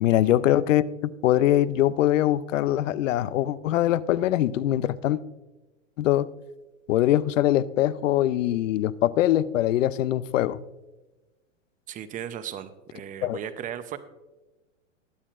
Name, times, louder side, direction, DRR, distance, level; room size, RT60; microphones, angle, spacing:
voice 1, 0.0-5.2 6.0-6.3 6.9-10.6 13.2-13.4, left 13 dB, 75° left, 0.6 m, -23 dB
voice 2, 11.9-14.0, right 10 dB, 20° right, 0.6 m, -36 dB
19.5 x 8.5 x 2.5 m
hypercardioid pair, 125°, 38 cm